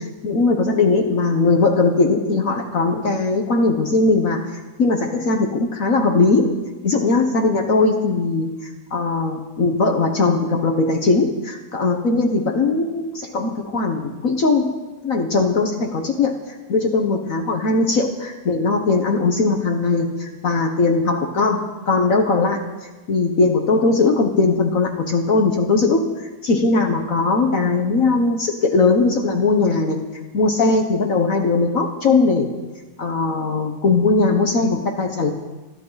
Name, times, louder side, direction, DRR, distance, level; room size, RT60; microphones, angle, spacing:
voice 1, 0.0-6.5 6.8-14.7 15.0-22.6 23.1-30.0 30.3-32.5 33.0-35.3, left 3 dB, 55° left, 3 dB, 1.6 m, -19 dB
28.0 x 11.0 x 4.1 m, 1.2 s
omnidirectional pair, 1.8 m